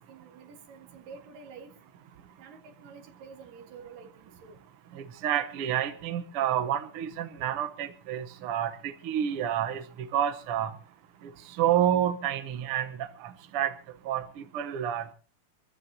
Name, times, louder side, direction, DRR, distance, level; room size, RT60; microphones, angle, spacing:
voice 1, 0.1-1.7 2.4-4.6, right 5 dB, 70° right, 6 dB, 3.3 m, -49 dB
voice 2, 4.9-10.7 11.2-11.3 11.6-13.7 14.0-15.1, right 10 dB, 90° right, 9 dB, 1.2 m, -29 dB
25.0 x 14.5 x 2.8 m, 0.37 s
omnidirectional pair, 4.1 m